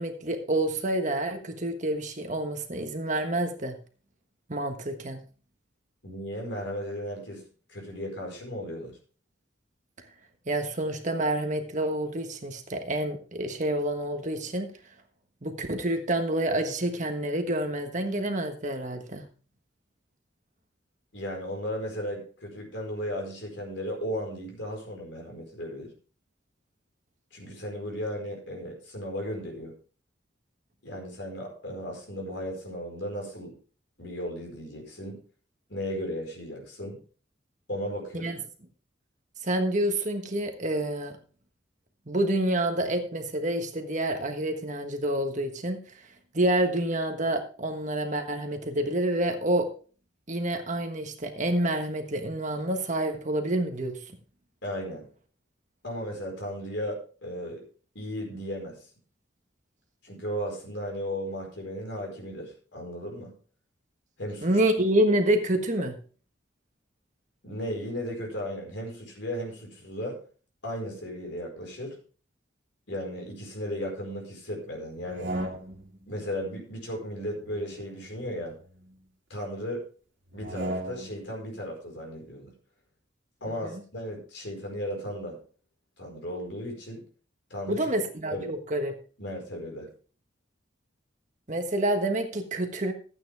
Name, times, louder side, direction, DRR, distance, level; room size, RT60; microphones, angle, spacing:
voice 1, 0.0-3.8 4.5-5.2 10.5-14.7 15.4-19.2 38.1-38.4 39.4-41.1 42.1-45.8 46.3-49.7 50.3-54.0 64.4-65.9 83.6-83.8 87.7-88.9 91.5-92.9, right 1 dB, 40° right, 5 dB, 1.4 m, -28 dB
voice 2, 6.0-7.4 7.7-9.0 21.1-25.9 27.3-29.7 30.8-33.5 34.0-35.2 35.7-37.0 37.7-38.3 54.6-55.1 55.8-57.6 57.9-58.9 60.0-63.3 64.2-64.5 67.4-70.2 70.6-72.0 72.9-75.3 76.1-78.6 79.3-79.8 80.3-82.5 83.4-85.4 86.0-87.0 87.5-87.9 88.3-88.5 89.2-89.9, equal, 65° left, 1 dB, 4.7 m, -35 dB
sound 1, 75.0-76.0 77.3-79.0 80.3-81.3, right 1 dB, 60° right, 2.3 m, -37 dB
13.5 x 8.8 x 3.5 m, 0.39 s
head